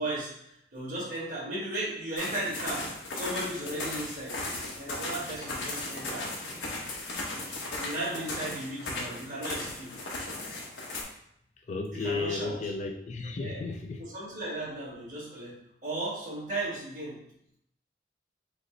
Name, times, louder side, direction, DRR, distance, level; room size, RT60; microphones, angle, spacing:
voice 1, 0.0-4.4 4.8-6.3 7.8-10.0 11.9-12.6 13.4-13.7 14.0-15.5 15.8-17.3, right 1 dB, 45° right, -6 dB, 1.7 m, -36 dB
sound 1, 2.2-11.0, left 2 dB, 85° left, 1.0 m, -36 dB
voice 2, 11.7-14.1, left 3 dB, 40° left, 4 dB, 0.3 m, -33 dB
5.2 x 2.0 x 3.7 m, 0.73 s
head